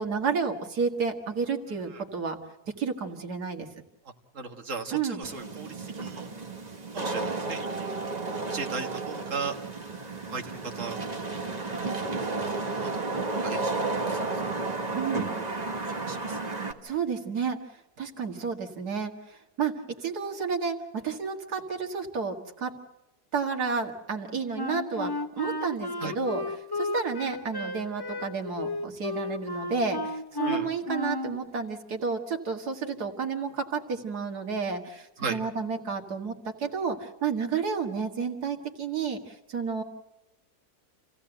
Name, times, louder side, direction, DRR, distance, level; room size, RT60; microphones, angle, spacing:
voice 1, 0.0-2.4 2.8-3.7 4.9-5.2 14.9-15.3 16.8-17.6 18.0-19.7 20.0-22.8 23.3-39.8, right 5 dB, 80° right, 3 dB, 2.4 m, -31 dB
voice 2, 4.3-6.3 6.9-7.9 8.4-9.5 10.3-11.0 12.0-12.3 12.7-12.9 13.3-13.8 14.1-14.4 15.9-16.4 26.0-26.1 30.4-30.7 35.2-35.4, right 4 dB, 55° right, 4 dB, 2.0 m, -37 dB
Wind / Rain, 5.2-16.7, right 3 dB, 25° right, 1.4 m, -32 dB
Wind instrument woodwind instrument, 24.6-31.4, left 2 dB, 20° left, 0.7 m, -33 dB
27.5 x 16.0 x 7.9 m, 0.96 s
omnidirectional pair, 1.6 m